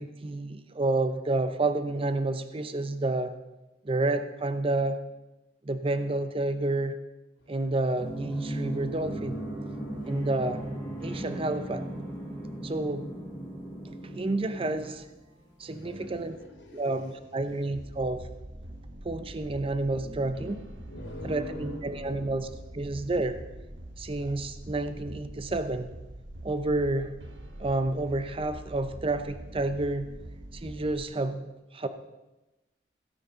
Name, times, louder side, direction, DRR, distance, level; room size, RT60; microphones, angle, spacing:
voice 1, 0.0-3.3 3.8-5.0 5.6-7.0 7.5-9.4 10.1-10.6 11.0-11.9 12.6-13.1 13.8-15.0 15.6-16.4 16.7-18.2 19.0-20.6 21.2-23.4 24.0-25.9 26.4-27.1 27.6-30.1 30.5-31.5 31.7-31.9, right 2 dB, 30° right, 10 dB, 0.6 m, -30 dB
sound 1, 7.9-15.5, right 1 dB, 10° left, 3.8 m, -37 dB
voice 2, 15.3-17.2 17.5-17.7 19.9-22.6, left 1 dB, 80° left, 0 dB, 3.4 m, -45 dB
sound 2, 17.7-31.0, right 1 dB, 85° right, 1.4 m, -44 dB
16.5 x 6.3 x 5.6 m, 1.0 s
head